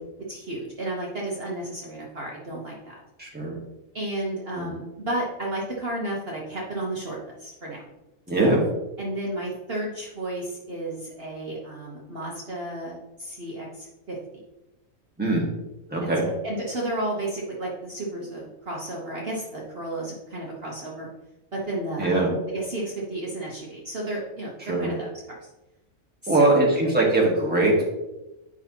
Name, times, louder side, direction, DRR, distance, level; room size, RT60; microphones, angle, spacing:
voice 1, 0.3-2.9 3.9-7.8 9.0-14.2 16.0-16.1 16.4-21.1 21.5-24.5 24.8-25.5 26.2-26.7, right 1 dB, 45° right, -3 dB, 1.2 m, -32 dB
voice 2, 3.2-3.6 4.5-4.7 8.3-8.6 15.2-15.4 15.9-16.2 22.0-22.3 24.7-24.9 26.3-27.9, right 2 dB, 5° right, -3 dB, 1.4 m, -21 dB
8.8 x 5.6 x 2.9 m, 1.0 s
omnidirectional pair, 1.5 m